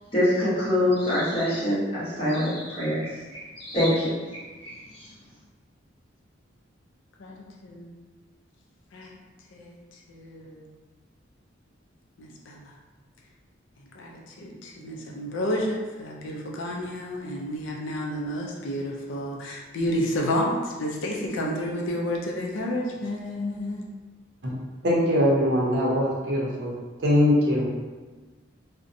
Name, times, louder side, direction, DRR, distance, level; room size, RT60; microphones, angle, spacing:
voice 1, 0.1-3.1 3.6-4.7, left 1 dB, 25° left, -10 dB, 0.9 m, -25 dB
voice 2, 7.6-7.9 8.9-9.2 9.5-10.6 12.2-12.7 13.9-23.9, equal, 70° left, -1 dB, 0.4 m, -30 dB
voice 3, 24.8-26.7 27.0-27.7, left 1 dB, 60° right, -4 dB, 0.6 m, -22 dB
2.6 x 2.1 x 2.5 m, 1.3 s
head